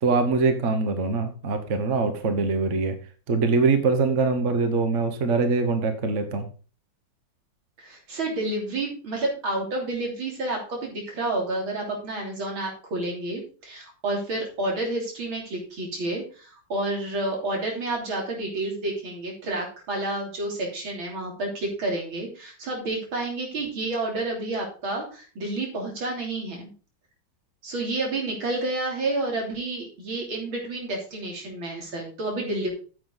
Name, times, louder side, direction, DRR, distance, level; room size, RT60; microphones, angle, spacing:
voice 1, 0.0-3.0 3.3-6.4, right 4 dB, 40° right, 8 dB, 1.4 m, -23 dB
voice 2, 7.8-26.7 27.6-32.7, right 2 dB, 85° right, 0 dB, 4.0 m, -30 dB
9.7 x 7.9 x 4.0 m, 0.37 s
omnidirectional pair, 2.2 m